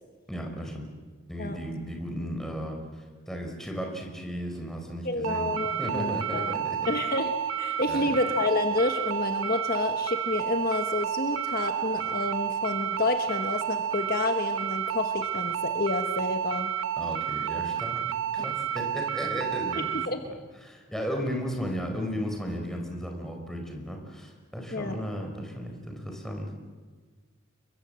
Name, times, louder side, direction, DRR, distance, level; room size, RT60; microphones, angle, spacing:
voice 1, 0.3-0.9 1.3-5.5 5.8-6.9 7.9-8.2 17.0-18.1 18.3-20.0 20.2-20.4 20.6-26.6, equal, ahead, 1 dB, 4.4 m, -35 dB
voice 2, 5.0-6.6 6.9-16.7 18.4-18.5 19.7-20.2 24.7-25.0, left 2 dB, 45° left, 5 dB, 1.4 m, -29 dB
sound 1, 5.2-20.1, right 9 dB, 85° right, 1.0 m, -30 dB
29.0 x 23.0 x 7.7 m, 1.5 s
head